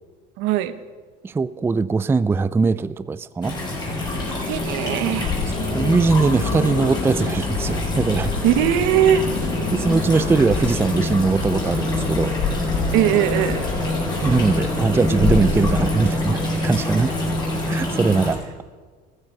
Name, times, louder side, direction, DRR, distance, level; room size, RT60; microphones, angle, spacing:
voice 1, 0.4-0.7 4.5-5.3 8.4-9.2 12.9-13.6 17.7-17.8, right 11 dB, 80° right, 13 dB, 1.1 m, -19 dB
voice 2, 1.2-3.6 5.5-8.3 9.7-12.3 14.2-17.1 17.7-18.4, right 4 dB, 10° right, 16 dB, 0.4 m, -21 dB
sound 1, 3.4-18.3, left 1 dB, 20° left, 5.9 m, -26 dB
sound 2, 4.0-17.4, left 4 dB, 50° left, 2.5 m, -29 dB
14.5 x 14.5 x 5.5 m, 1.5 s
cardioid pair, 115°, 20 cm